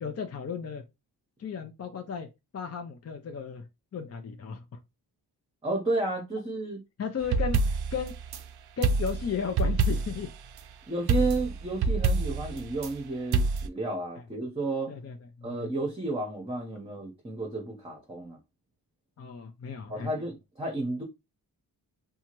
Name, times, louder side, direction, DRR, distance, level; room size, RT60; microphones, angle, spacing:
voice 1, 0.0-0.8 1.4-2.3 2.5-3.6 3.9-4.8 7.0-8.1 8.8-10.3 14.9-15.7 19.2-20.1, left 6 dB, 40° left, 0.5 m, -35 dB
voice 2, 5.6-6.8 10.9-14.9 15.4-18.4 19.9-21.0, right 2 dB, 15° right, 0.8 m, -32 dB
sound 1, 7.2-8.4 8.8-10.3 11.1-12.9 13.3-13.7, right 4 dB, 70° right, 0.5 m, -26 dB
2.8 x 2.3 x 2.9 m
cardioid pair, 70°, 40 cm